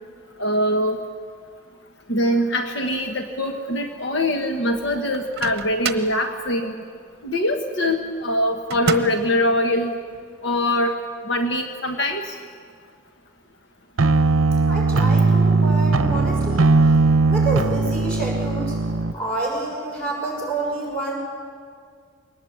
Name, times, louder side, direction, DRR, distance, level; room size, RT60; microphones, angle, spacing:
voice 1, 0.4-1.0 2.1-6.7 7.2-10.0 10.4-10.9 11.3-12.3, left 1 dB, 60° left, 4 dB, 1.3 m, -23 dB
Microwave oven, 5.1-6.2 8.7-9.3, right 5 dB, 50° right, 1.0 m, -28 dB
sound 1, 14.0-19.1, right 3 dB, 75° right, 0.8 m, -18 dB
voice 2, 14.7-16.7 17.2-18.8 19.1-21.2, right 2 dB, 5° left, -3 dB, 6.2 m, -28 dB
22.0 x 19.0 x 8.5 m, 2.1 s
head